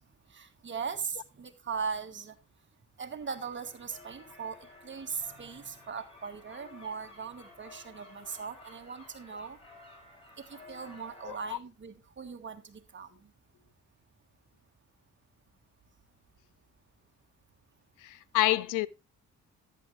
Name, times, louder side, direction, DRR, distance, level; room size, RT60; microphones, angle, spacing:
voice 1, 0.3-2.3 3.0-4.6 4.8-9.6 10.5-13.3, right 5 dB, 40° right, 1.6 m, -39 dB
sound 1, 3.2-11.5, left 2 dB, 20° left, 6.5 m, -54 dB
voice 2, 11.3-11.6 18.0-18.9, left 17 dB, 90° left, 0.6 m, -28 dB
10.5 x 9.7 x 3.2 m
cardioid pair, 90°, 30 cm